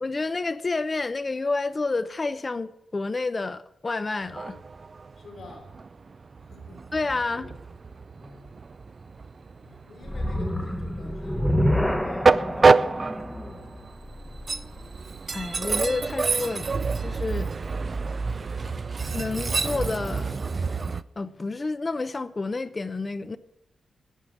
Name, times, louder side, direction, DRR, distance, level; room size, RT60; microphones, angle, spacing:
voice 1, 0.0-4.6 6.9-7.5 15.3-16.7 17.0-17.5 19.1-20.4 21.2-23.4, left 3 dB, 30° left, 0.7 m, -29 dB
Train, 4.2-21.0, right 4 dB, 40° right, 0.5 m, -27 dB
voice 2, 5.2-5.8 6.4-6.9 7.3-7.6 8.1-8.6 9.6-13.9, left 2 dB, 70° left, 4.5 m, -49 dB
sound 1, 10.0-15.3, equal, 5° left, 0.9 m, -28 dB
11.0 x 7.8 x 8.6 m
cardioid pair, 90°, 0 cm